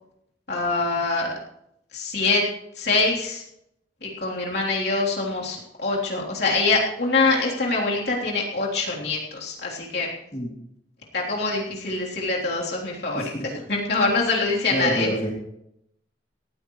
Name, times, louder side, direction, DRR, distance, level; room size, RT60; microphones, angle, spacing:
voice 1, 0.5-1.4 1.9-2.4 2.8-3.4 4.0-10.1 11.1-15.1, left 3 dB, 60° left, -3 dB, 3.4 m, -24 dB
voice 2, 13.1-13.5 14.7-15.3, equal, 30° left, -2 dB, 2.8 m, -27 dB
18.5 x 14.5 x 3.2 m, 0.77 s
head